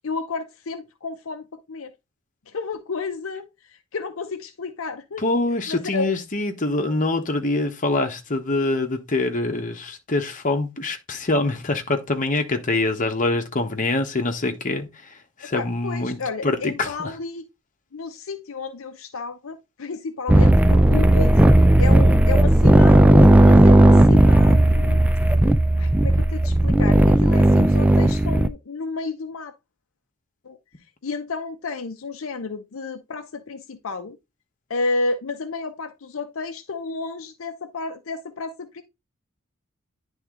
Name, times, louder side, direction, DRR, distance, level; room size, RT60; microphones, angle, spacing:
voice 1, 0.0-1.9 2.5-5.2 5.7-6.1 15.4-17.5 17.9-21.4 21.8-25.0 25.8-29.5 30.4-30.6 31.0-34.2 34.7-38.8, left 3 dB, 70° left, 0.7 m, -31 dB
voice 2, 5.2-16.2 16.4-17.1, left 2 dB, 40° left, 1.1 m, -24 dB
sound 1, 20.3-28.5, right 1 dB, 5° right, 0.4 m, -14 dB
10.0 x 3.6 x 3.7 m
head